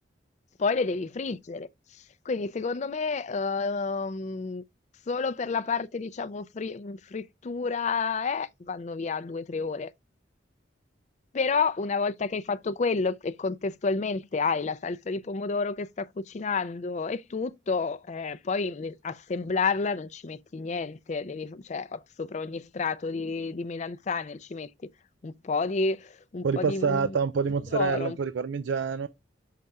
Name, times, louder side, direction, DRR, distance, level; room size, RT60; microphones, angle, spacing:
voice 1, 0.6-1.7 2.3-4.6 5.1-9.9 11.3-24.7 25.2-27.1 27.7-28.2, left 4 dB, 40° left, 0.4 m, -30 dB
voice 2, 26.4-29.1, right 5 dB, 80° right, 0.4 m, -27 dB
5.7 x 5.3 x 3.5 m
head